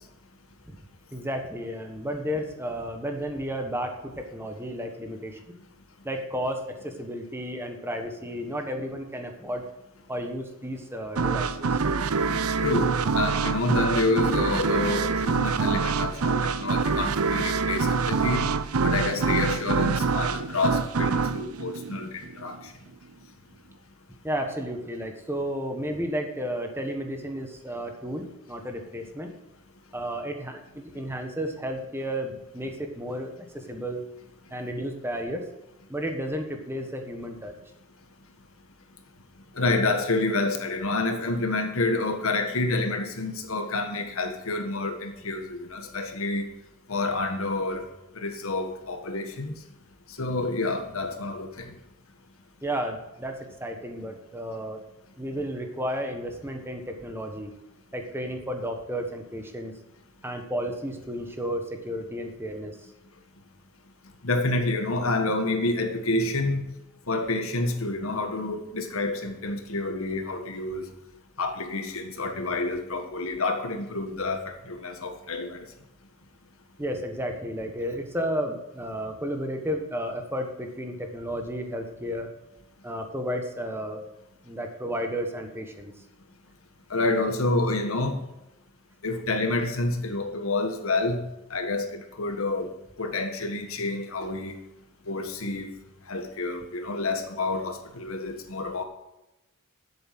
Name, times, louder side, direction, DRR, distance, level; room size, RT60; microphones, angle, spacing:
voice 1, 1.1-5.6 6.0-9.6 10.1-11.7 24.2-29.3 29.9-34.0 34.5-35.5 35.9-37.5 52.6-54.8 55.2-57.5 57.9-59.7 60.2-62.8 76.8-82.3 82.8-84.0 84.4-85.9, equal, 10° right, 1.3 m, -32 dB
sound 1, 11.2-22.6, right 4 dB, 75° right, 0.6 m, -25 dB
voice 2, 12.6-18.5 18.8-22.6 39.5-46.5 46.9-47.8 48.1-49.5 50.2-51.7 64.2-66.6 67.1-70.9 71.4-75.6 86.9-88.2 89.0-91.2 91.5-94.6 95.1-95.7 96.1-98.8, left 2 dB, 65° left, 1.5 m, -28 dB
11.0 x 8.0 x 6.0 m
head